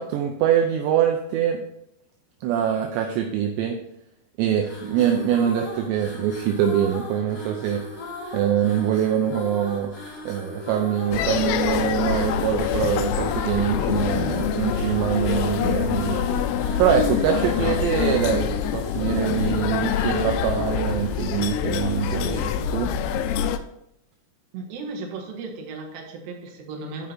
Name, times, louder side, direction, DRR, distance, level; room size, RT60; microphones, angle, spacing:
voice 1, 0.0-1.6 2.4-3.8 4.4-7.8 8.3-9.9 10.3-16.2 16.8-22.9, right 9 dB, 80° right, 3 dB, 2.8 m, -24 dB
sound 1, 4.6-21.0, left 1 dB, 65° left, 0.9 m, -38 dB
sound 2, 11.1-23.6, left 8 dB, 85° left, 2.3 m, -25 dB
voice 2, 24.5-27.1, right 3 dB, 65° right, 1 dB, 2.8 m, -35 dB
12.0 x 5.0 x 4.3 m, 0.80 s
omnidirectional pair, 5.3 m